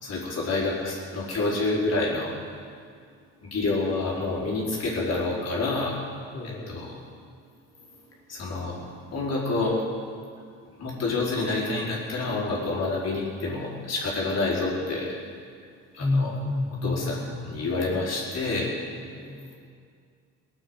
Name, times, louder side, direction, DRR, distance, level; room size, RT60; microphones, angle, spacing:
voice 1, 0.0-2.3 3.5-6.0 6.7-7.0 8.3-8.8 9.1-9.8 10.8-15.1 15.9-16.3 16.8-18.7, left 3 dB, 55° left, -4 dB, 4.7 m, -28 dB
voice 2, 6.3-6.8 16.0-17.7 19.1-19.5, left 2 dB, 35° left, -7 dB, 3.4 m, -30 dB
19.0 x 9.1 x 8.0 m, 2.1 s
cardioid pair, 90°, 30 cm